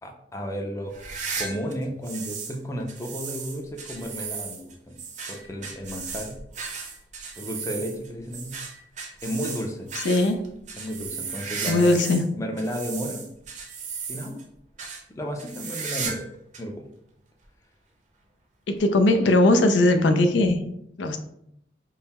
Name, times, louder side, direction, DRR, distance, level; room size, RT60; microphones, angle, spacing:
voice 1, 0.0-0.9 1.4-5.0 5.3-6.3 7.4-8.6 9.2-9.9 10.8-12.0 12.4-13.3 14.1-14.4 15.1-16.3 16.6-16.9, equal, 15° left, 2 dB, 0.5 m, -33 dB
sound 1, 0.9-2.6 2.9-12.3 12.6-14.4 14.8-15.0 15.4-16.3 16.5-16.6 17.4-17.5 18.8-18.9, right 5 dB, 45° right, 0.6 m, -35 dB
voice 2, 10.0-10.4 11.6-12.3 18.7-20.6 21.0-21.2, left 2 dB, 90° left, 7 dB, 0.4 m, -19 dB
3.7 x 2.0 x 4.1 m, 0.75 s
head